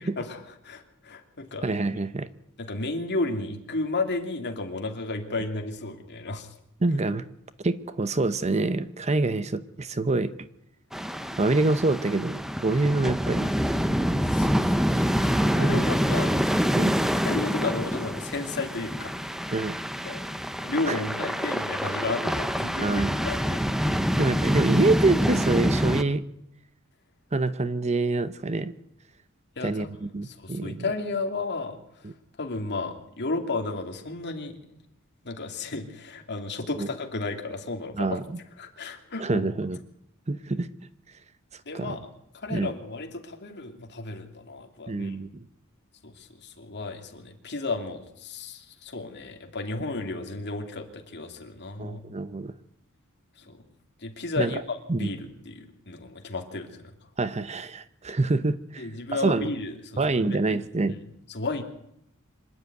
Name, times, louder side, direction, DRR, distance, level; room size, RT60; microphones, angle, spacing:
voice 1, 0.2-1.7 2.6-6.5 14.3-16.4 17.2-19.2 20.0-20.2 20.6-23.6 24.2-24.3 29.6-29.9 30.2-31.8 32.4-34.8 35.2-38.2 38.6-39.5 41.7-42.1 42.4-45.2 46.0-52.0 53.4-53.6 54.0-56.9 58.8-60.5 60.9-61.0 61.3-61.6, left 3 dB, 50° left, 4 dB, 2.6 m, -33 dB
voice 2, 1.6-2.3 6.8-7.2 7.6-10.3 11.4-13.5 15.5-15.8 16.7-17.0 19.5-19.8 20.9-21.0 22.8-23.1 24.2-26.2 27.3-28.7 29.6-30.9 32.0-32.1 36.8-36.9 37.9-38.4 39.2-39.8 40.3-40.7 41.7-42.0 42.5-42.7 44.9-45.5 51.8-52.5 54.4-54.5 54.9-55.1 57.2-58.9 59.2-59.5 60.0-60.9, right 2 dB, 30° right, 13 dB, 0.7 m, -26 dB
sound 1, 10.9-26.0, equal, ahead, 0.8 m, -26 dB
25.5 x 11.0 x 9.3 m, 0.78 s
head